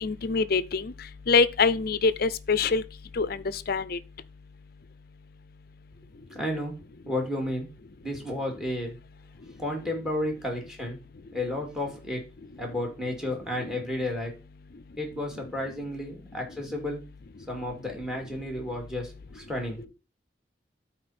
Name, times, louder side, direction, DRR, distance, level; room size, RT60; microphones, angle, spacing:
voice 1, 0.0-0.9 1.3-2.8 3.2-4.0, left 4 dB, 55° left, 0.6 m, -24 dB
voice 2, 6.3-6.7 7.1-7.7 8.0-9.0 9.6-11.0 11.3-12.2 12.6-14.3 15.0-17.0 17.5-19.9, left 1 dB, 5° right, 2.5 m, -32 dB
12.0 x 4.5 x 4.3 m
head